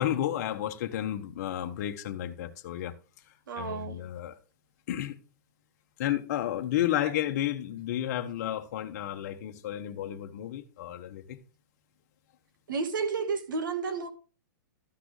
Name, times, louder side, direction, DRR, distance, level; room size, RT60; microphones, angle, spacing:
voice 1, 0.0-2.9 3.6-4.4 4.9-5.1 6.0-11.4, left 12 dB, 50° left, 1.2 m, -32 dB
voice 2, 3.5-4.0 12.7-14.1, right 5 dB, 80° right, 1.8 m, -31 dB
13.5 x 6.0 x 3.3 m
hypercardioid pair, 150°, 11 cm